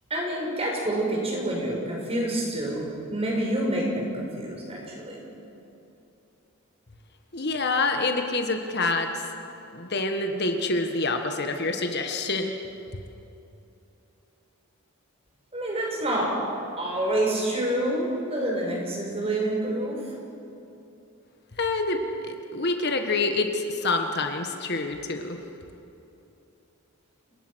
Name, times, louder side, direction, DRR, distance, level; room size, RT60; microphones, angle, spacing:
voice 1, 0.1-5.2 15.5-16.3 16.8-20.0, right 1 dB, 30° right, -1 dB, 5.8 m, -27 dB
voice 2, 7.3-9.3 9.7-12.5 21.5-25.4, left 3 dB, 50° left, 5 dB, 1.6 m, -27 dB
29.0 x 19.5 x 6.4 m, 2.8 s
head